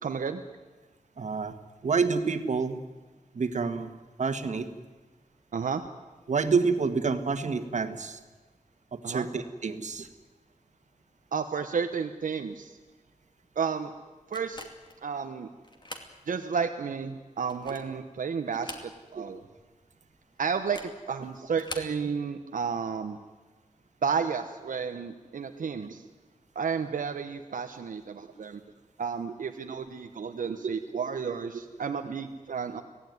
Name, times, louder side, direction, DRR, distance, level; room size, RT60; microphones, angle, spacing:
voice 1, 0.0-0.4 5.5-5.8 9.0-9.3 11.3-12.8 13.6-13.9 14.3-14.7 15.0-15.5 16.3-19.4 20.4-23.2 24.0-26.0 26.5-28.6 29.0-32.8, right 6 dB, 90° right, 6 dB, 1.1 m, -32 dB
voice 2, 1.2-1.5 1.8-2.8 3.3-3.9 4.2-4.7 6.3-8.2 8.9-10.1 19.1-19.2 25.8-25.9 30.4-30.5 30.9-31.0 32.0-32.1, right 4 dB, 65° right, 8 dB, 1.8 m, -28 dB
sound 1, 14.3-15.0 15.6-16.1 16.6-16.7 17.3-18.0 18.5-19.3 19.5-19.6 20.6-21.0 21.5-22.0, left 2 dB, 35° left, 2.6 m, -43 dB
25.5 x 17.5 x 9.6 m, 1.3 s
wide cardioid pair, 130°, 13 cm